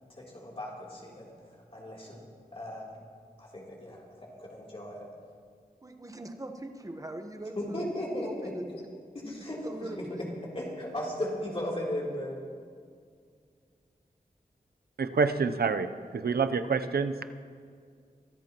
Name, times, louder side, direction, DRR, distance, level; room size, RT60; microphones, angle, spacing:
voice 1, 0.1-2.2 2.5-3.0 3.4-5.1 7.6-8.5 9.1-10.1 10.5-12.4, left 1 dB, 40° left, -5 dB, 3.3 m, -36 dB
voice 2, 5.8-8.7 9.6-10.2, right 1 dB, 20° right, 5 dB, 1.1 m, -41 dB
voice 3, 15.0-15.9 16.1-17.1, right 5 dB, 80° right, 10 dB, 0.7 m, -27 dB
25.0 x 13.5 x 3.0 m, 2.1 s
wide cardioid pair, 90°, 16 cm